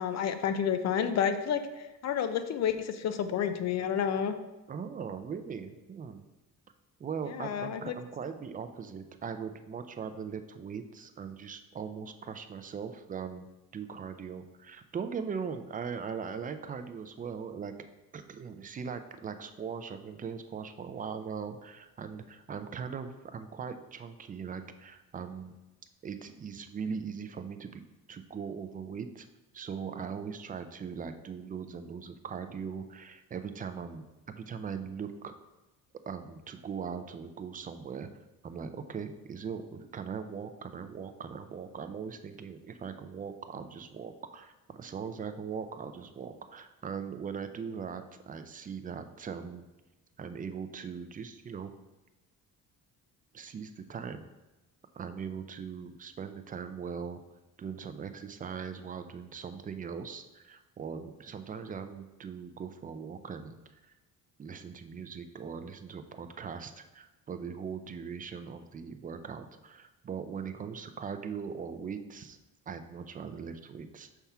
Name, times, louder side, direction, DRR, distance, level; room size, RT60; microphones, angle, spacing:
voice 1, 0.0-1.6 2.0-4.3 7.3-7.9, left 8 dB, 45° left, 9 dB, 0.5 m, -30 dB
voice 2, 4.7-6.2 7.0-13.5 13.7-17.7 18.1-25.5 26.0-27.8 28.1-29.3 29.5-35.3 36.1-38.1 38.4-49.6 50.2-51.7 53.3-54.3 54.9-57.2 57.6-63.6 63.8-63.9 64.4-72.4 72.7-74.2, right 6 dB, 25° right, 9 dB, 0.4 m, -40 dB
5.7 x 3.5 x 5.6 m, 1.1 s
cardioid pair, 130°, 36 cm